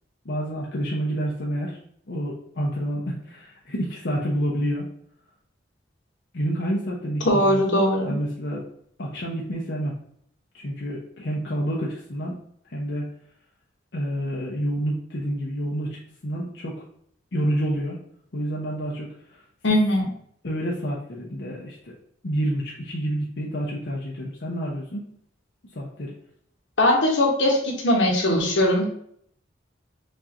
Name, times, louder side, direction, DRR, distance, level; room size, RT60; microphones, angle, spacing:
voice 1, 0.2-1.8 2.1-4.8 6.3-7.8 8.0-8.6 9.0-9.9 10.5-12.3 12.7-13.1 13.9-16.7 17.3-18.0 18.3-19.1 20.4-21.9 22.2-25.0 25.7-26.1, equal, 65° left, -4 dB, 0.7 m, -28 dB
voice 2, 7.2-8.1 19.6-20.1 26.8-28.9, left 1 dB, 85° left, 0 dB, 1.2 m, -20 dB
6.3 x 2.5 x 2.9 m, 0.66 s
head